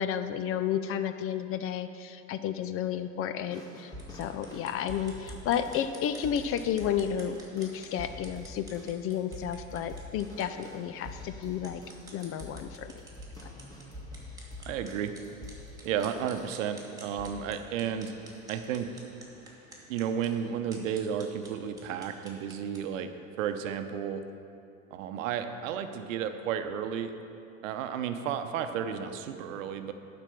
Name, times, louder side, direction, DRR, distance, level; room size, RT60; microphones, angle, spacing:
voice 1, 0.0-11.8 12.1-12.9, left 9 dB, 35° left, 11 dB, 0.4 m, -32 dB
sound 1, 3.5-16.7 17.2-17.5 18.3-18.4, left 1 dB, 10° left, 1.9 m, -46 dB
sound 2, 3.9-22.9, right 2 dB, 10° right, 2.5 m, -53 dB
voice 2, 14.7-15.1 15.8-18.1 18.5-18.9 19.9-23.1 23.4-24.2 24.9-27.1 27.6-29.9, right 8 dB, 70° right, 8 dB, 0.8 m, -32 dB
11.5 x 4.5 x 7.0 m, 2.6 s
hypercardioid pair, 80°, 41 cm